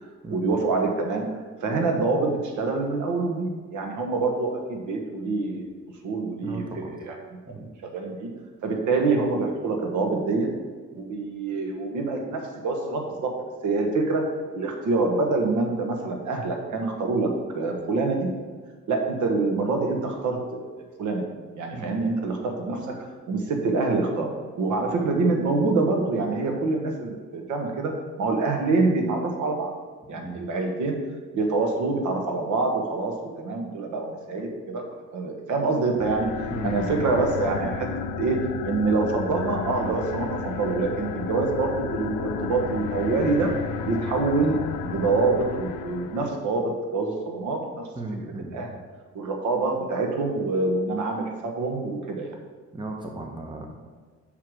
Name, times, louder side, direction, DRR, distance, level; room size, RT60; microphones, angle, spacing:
voice 1, 0.3-1.2 1.6-5.7 6.0-7.1 7.5-7.6 7.8-8.3 8.6-10.5 10.9-13.4 13.6-18.3 18.9-20.7 21.0-21.3 21.6-24.3 24.6-29.7 30.1-31.0 31.3-34.8 35.1-36.3 36.6-37.9 38.2-43.5 43.8-47.8 48.5-48.7 49.1-52.3, right 3 dB, 75° right, 2 dB, 1.3 m, -26 dB
voice 2, 6.4-6.9 7.5-7.7 21.7-22.0 30.1-30.4 36.5-37.1 48.0-48.7 52.7-53.7, right 2 dB, 15° right, 2 dB, 0.9 m, -35 dB
sound 1, 35.9-46.4, left 7 dB, 85° left, 0.5 m, -33 dB
5.7 x 4.8 x 6.2 m, 1.5 s
cardioid pair, 90°, 30 cm